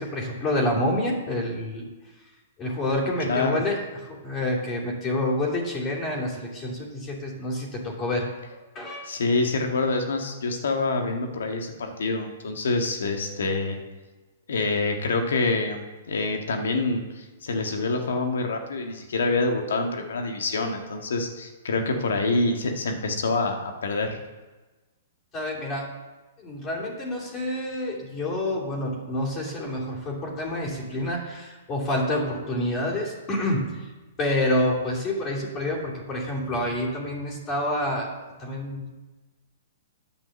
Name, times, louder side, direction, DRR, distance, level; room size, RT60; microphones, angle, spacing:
voice 1, 0.0-1.9 2.6-9.1 25.3-25.9 26.4-33.9 34.2-38.1 38.4-38.9, left 1 dB, 25° left, -4 dB, 2.8 m, -28 dB
voice 2, 3.3-3.6 9.0-13.8 14.5-24.2, left 3 dB, 75° left, 4 dB, 1.7 m, -26 dB
9.2 x 5.5 x 7.7 m, 1.2 s
hypercardioid pair, 130°, 0 cm